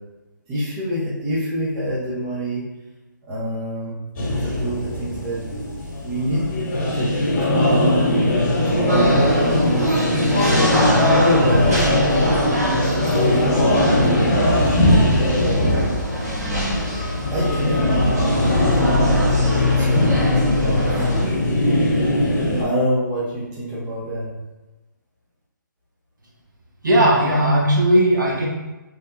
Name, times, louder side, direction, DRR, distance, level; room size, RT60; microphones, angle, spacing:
voice 1, 0.5-2.6 3.3-4.0 4.4-5.4 6.0-6.4 6.9-10.0 10.4-12.4 12.8-14.7 15.3-16.0 17.3-21.8 22.6-24.3, equal, 15° right, -8 dB, 0.8 m, -27 dB
sound 1, 4.1-22.6, left 1 dB, 35° left, 1.4 m, -20 dB
sound 2, 8.9-21.3, left 1 dB, 50° right, 1.2 m, -23 dB
voice 2, 26.8-28.5, right 1 dB, 70° right, -2 dB, 1.0 m, -17 dB
3.5 x 2.7 x 3.3 m, 1.1 s
hypercardioid pair, 160°, 11 cm